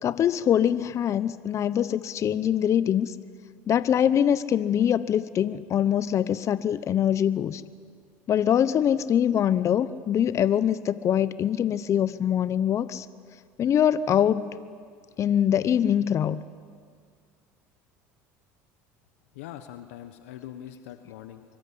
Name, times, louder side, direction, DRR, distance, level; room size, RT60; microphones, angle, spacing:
voice 1, 0.0-3.1 3.7-7.6 8.3-13.1 13.6-14.4 15.2-16.4, left 9 dB, 45° left, 15 dB, 0.9 m, -23 dB
voice 2, 19.3-21.4, left 11 dB, 85° left, 9 dB, 1.3 m, -42 dB
25.0 x 22.5 x 10.0 m, 2.1 s
supercardioid pair, 90°, 7 cm